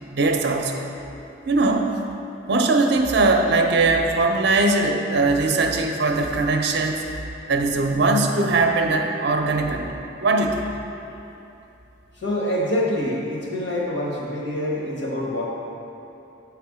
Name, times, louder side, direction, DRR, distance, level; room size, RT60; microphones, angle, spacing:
voice 1, 0.1-0.9 1.5-1.9 2.5-7.1 7.5-10.6, right 3 dB, 60° right, 3 dB, 0.5 m, -20 dB
voice 2, 12.2-15.4, left 1 dB, 65° left, -4 dB, 1.2 m, -25 dB
7.9 x 3.4 x 4.8 m, 2.8 s
head